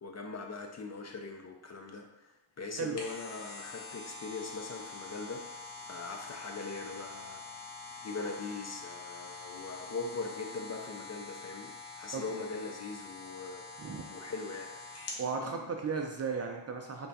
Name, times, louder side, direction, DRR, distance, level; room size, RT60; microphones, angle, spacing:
voice 1, 0.0-7.4 8.0-13.6 14.1-14.7 15.4-15.7, left 3 dB, 35° left, 2 dB, 0.5 m, -41 dB
sound 1, 2.7-15.3 15.7-15.8, left 3 dB, 55° left, 0.9 m, -46 dB
voice 2, 15.2-17.1, right 5 dB, 35° right, 2 dB, 0.4 m, -35 dB
3.4 x 2.2 x 4.0 m, 1.1 s
cardioid pair, 75°, 49 cm